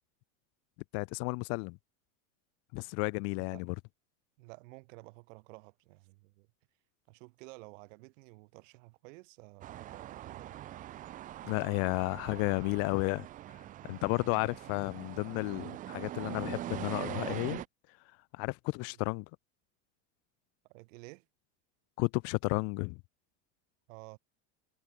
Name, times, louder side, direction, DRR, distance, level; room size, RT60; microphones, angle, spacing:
voice 1, 0.9-1.8 2.7-3.7 11.4-13.2 13.9-17.6 18.4-19.3 22.0-22.9, left 33 dB, 40° left, 0.4 m, -32 dB
voice 2, 3.3-3.7 4.4-6.5 7.1-10.6 18.8-19.0 20.7-21.3 23.9-24.2, right 25 dB, 70° right, 2.6 m, -53 dB
sound 1, 9.6-17.7, right 13 dB, 20° right, 0.4 m, -43 dB
supercardioid pair, 155°, 40 cm